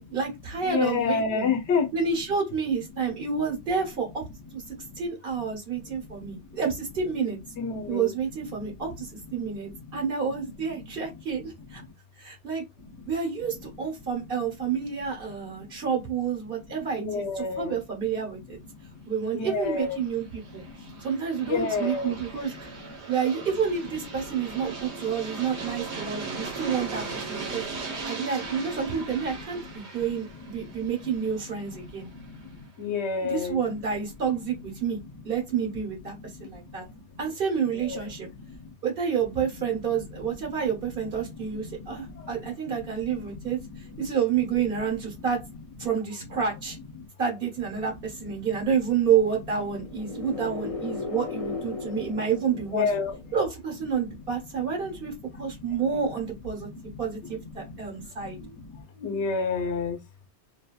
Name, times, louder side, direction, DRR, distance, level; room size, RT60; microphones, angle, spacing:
voice 1, 0.0-1.5 1.9-4.2 4.5-4.6 5.0-7.4 7.9-11.8 12.2-12.6 13.1-18.6 19.1-20.6 21.0-22.5 23.1-27.0 27.3-27.6 28.0-32.1 33.2-35.0 35.2-36.1 36.4-36.8 37.2-38.3 38.8-43.6 44.0-45.4 45.8-46.8 47.2-52.9 53.3-56.7 57.0-58.4, right 6 dB, 55° right, 1.3 m, -29 dB
voice 2, 0.6-1.9 4.7-5.0 5.7-6.3 7.5-8.1 8.4-8.8 9.4-10.0 10.4-11.1 11.8-11.9 12.8-12.9 15.5-15.7 16.9-17.8 18.6-18.9 19.3-20.0 20.5-21.0 21.5-22.2 24.8-26.5 27.0-28.0 30.1-30.2 30.8-30.9 31.7-33.6 36.1-37.0 37.8-38.7 39.6-39.9 40.3-40.4 41.0-44.1 45.1-45.2 47.0-47.1 48.2-48.5 50.0-50.2 50.8-51.1 51.9-52.2 52.7-53.2 55.3-55.8 56.6-60.0, left 5 dB, 85° left, 1.0 m, -33 dB
Aircraft, 19.6-32.4, right 4 dB, 90° right, 1.2 m, -39 dB
sound 1, 49.8-53.6, left 4 dB, 45° left, 0.5 m, -36 dB
2.8 x 2.6 x 2.3 m
omnidirectional pair, 1.1 m